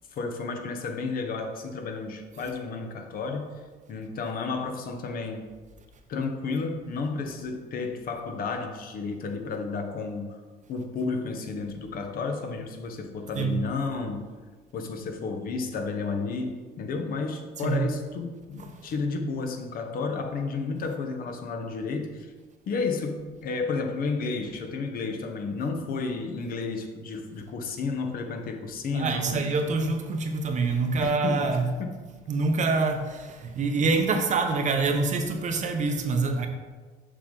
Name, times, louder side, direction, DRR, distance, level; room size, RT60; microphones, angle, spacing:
voice 1, 0.1-3.5 3.9-5.5 6.1-10.4 10.7-14.2 14.7-22.3 22.7-29.4 31.0-32.0, left 4 dB, 60° left, 5 dB, 0.9 m, -32 dB
voice 2, 28.9-31.7 32.3-36.5, right 4 dB, 45° right, 5 dB, 0.8 m, -26 dB
6.7 x 5.2 x 3.8 m, 1.4 s
cardioid pair, 110°, 17 cm